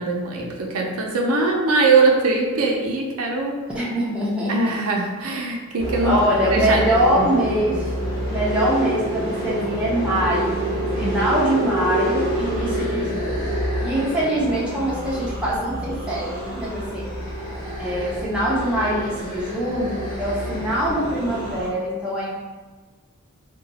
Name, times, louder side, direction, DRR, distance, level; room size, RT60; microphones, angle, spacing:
voice 1, 0.0-3.6 4.5-6.1 6.5-7.3 11.0-11.2 13.9-14.1, right 3 dB, 75° right, 0 dB, 0.5 m, -22 dB
voice 2, 3.7-4.7 6.0-7.9 8.3-10.7 11.0-13.5 13.8-17.1 17.8-22.3, right 1 dB, 5° right, -7 dB, 0.6 m, -23 dB
sound 1, 5.8-21.7, equal, 20° left, 1.2 m, -27 dB
2.8 x 2.2 x 4.0 m, 1.3 s
head